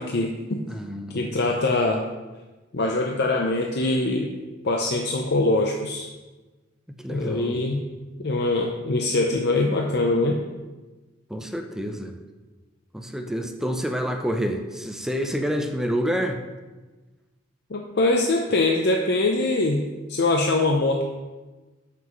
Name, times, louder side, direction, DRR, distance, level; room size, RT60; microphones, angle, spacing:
voice 1, 0.0-0.6 1.1-2.0 2.7-4.3 4.6-6.1 7.1-7.8 8.2-10.4 17.7-21.0, left 2 dB, 60° left, 1 dB, 0.7 m, -23 dB
voice 2, 0.7-1.5 7.0-7.6 11.3-12.2 12.9-16.4, equal, 5° right, 4 dB, 0.6 m, -28 dB
12.5 x 6.0 x 3.1 m, 1.2 s
head